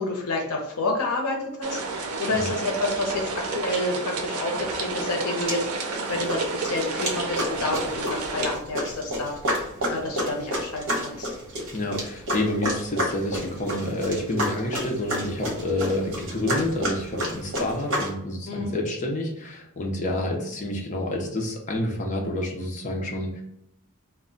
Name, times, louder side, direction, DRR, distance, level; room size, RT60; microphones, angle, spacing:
voice 1, 0.0-11.4 18.5-18.7, left 2 dB, 75° left, 1 dB, 0.7 m, -29 dB
sound 1, 1.6-8.6, right 3 dB, 80° right, 0.5 m, -31 dB
sound 2, 5.0-5.1 5.5-6.0 6.3-18.1, equal, 60° right, 1.0 m, -30 dB
voice 2, 11.7-23.4, left 1 dB, 35° left, 0 dB, 0.6 m, -28 dB
2.2 x 2.1 x 3.8 m, 0.80 s
head